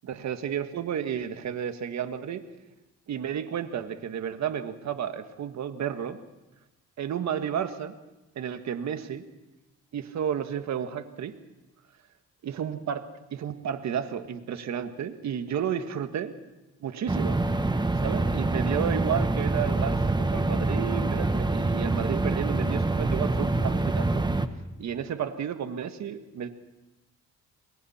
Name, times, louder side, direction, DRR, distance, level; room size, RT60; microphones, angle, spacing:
voice 1, 0.0-2.4 3.1-6.2 7.0-7.9 8.3-9.2 9.9-11.3 12.4-16.3 16.8-17.4 18.0-24.3 24.8-26.5, right 8 dB, 65° right, 9 dB, 1.6 m, -32 dB
sound 1, 17.1-24.5, right 2 dB, 15° right, 1.2 m, -26 dB
28.5 x 21.5 x 4.3 m, 1.0 s
cardioid pair, 90°, 30 cm